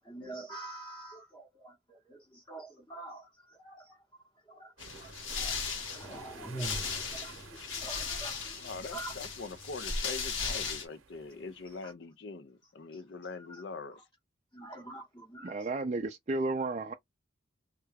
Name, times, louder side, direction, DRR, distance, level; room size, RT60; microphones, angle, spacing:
voice 1, 0.0-4.1 4.5-9.2 11.8-11.9 12.9-13.0 13.5-13.6 14.5-15.7, right 2 dB, 15° left, 0.9 m, -45 dB
sound 1, 4.8-10.9, left 5 dB, 75° left, 1.1 m, -37 dB
sound 2, 4.8-11.9, right 4 dB, 90° right, 0.8 m, -53 dB
voice 2, 8.6-14.1, left 4 dB, 55° left, 0.5 m, -43 dB
voice 3, 15.4-16.9, right 3 dB, 35° right, 0.4 m, -32 dB
3.2 x 2.3 x 3.3 m
head